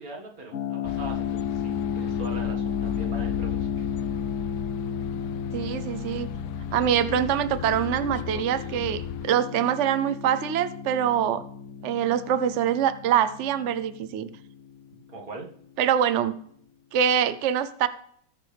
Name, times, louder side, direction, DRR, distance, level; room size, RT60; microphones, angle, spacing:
voice 1, 0.0-3.7 15.1-15.5, right 2 dB, 45° right, 0 dB, 2.3 m, -41 dB
sound 1, 0.5-15.3, left 7 dB, 65° left, 0.7 m, -33 dB
sound 2, 0.8-9.3, left 12 dB, 80° left, 1.3 m, -36 dB
voice 2, 5.5-6.3 6.7-11.4 11.8-14.3 15.8-16.4 16.9-17.9, right 9 dB, 80° right, 12 dB, 0.6 m, -24 dB
19.5 x 7.1 x 3.4 m, 0.63 s
omnidirectional pair, 2.1 m